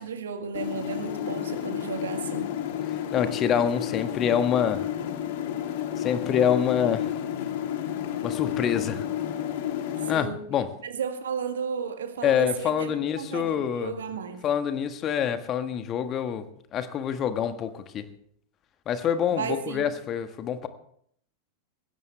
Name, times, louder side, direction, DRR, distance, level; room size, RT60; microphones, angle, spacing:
voice 1, 0.0-2.5 10.1-10.4 10.8-14.4 19.3-19.9, right 6 dB, 65° right, 7 dB, 1.8 m, -33 dB
sound 1, 0.5-10.2, left 10 dB, 50° left, 1.6 m, -31 dB
voice 2, 3.1-4.9 6.0-7.1 8.2-9.0 10.1-10.7 12.2-14.0 14.4-16.4 16.7-18.1 18.9-20.7, left 8 dB, 30° left, 9 dB, 1.5 m, -26 dB
19.5 x 17.0 x 3.4 m, 0.64 s
figure-of-eight pair, 90°, 0 cm